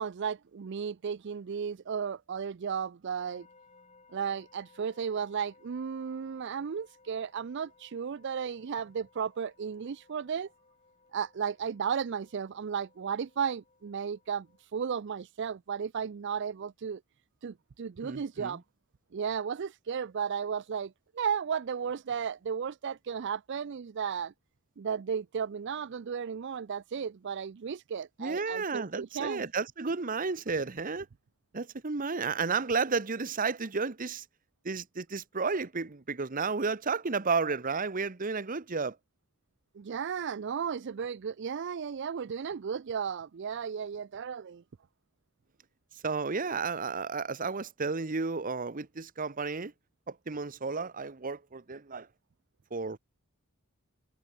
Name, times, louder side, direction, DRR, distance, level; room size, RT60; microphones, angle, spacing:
voice 1, 0.0-3.5 4.1-10.5 11.1-17.0 17.4-18.6 19.1-24.3 24.8-29.4 39.7-44.6, right 7 dB, 55° right, 0.4 m, -34 dB
sound 1, 3.2-14.6, left 4 dB, 30° left, 5.4 m, -63 dB
voice 2, 18.0-18.6 28.2-31.1 31.5-34.2 34.6-39.0 46.0-49.7 50.1-52.1 52.7-53.0, right 4 dB, 40° right, 1.0 m, -32 dB
head